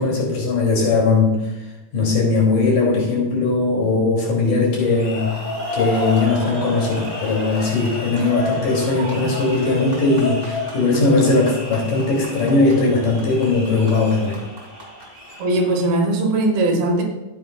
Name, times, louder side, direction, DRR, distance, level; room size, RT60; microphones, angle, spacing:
voice 1, 0.0-1.4 1.9-5.3 5.7-14.4, left 3 dB, 60° left, -3 dB, 3.9 m, -19 dB
sound 1, 4.8-15.9, left 2 dB, 15° right, 2.2 m, -31 dB
voice 2, 15.4-17.0, right 2 dB, 75° right, 1 dB, 3.3 m, -19 dB
14.0 x 8.8 x 2.3 m, 1.1 s
omnidirectional pair, 4.4 m